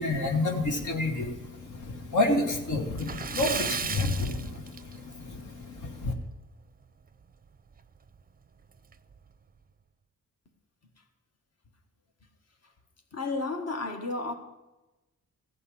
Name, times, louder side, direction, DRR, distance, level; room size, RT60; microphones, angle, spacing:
voice 1, 0.0-6.1, left 2 dB, 65° left, 1.5 m, -29 dB
Splash splatter, 2.9-5.3 5.6-5.8 6.2-6.3 7.8-7.9 8.2-8.3 8.9-9.2, right 6 dB, 25° right, 0.5 m, -34 dB
voice 2, 13.1-14.3, left 3 dB, 50° left, 1.6 m, -32 dB
15.0 x 5.5 x 8.5 m
wide cardioid pair, 120°, 32 cm